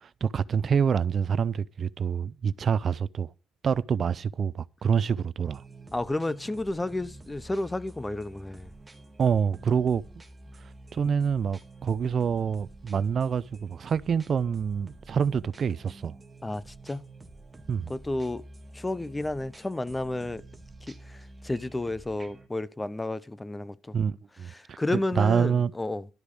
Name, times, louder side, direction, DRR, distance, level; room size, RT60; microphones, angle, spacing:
voice 1, 0.0-3.3 3.6-5.6 9.2-10.0 10.9-16.2 17.7-17.9 23.9-25.7, right 7 dB, 50° right, 0.4 m, -26 dB
sound 1, 5.5-22.5, right 2 dB, 20° right, 1.7 m, -49 dB
voice 2, 5.9-8.7 16.4-17.0 17.9-18.4 18.7-20.4 20.9-24.0 24.5-26.1, left 2 dB, 15° left, 0.6 m, -32 dB
12.0 x 4.8 x 8.4 m
cardioid pair, 90°, 0 cm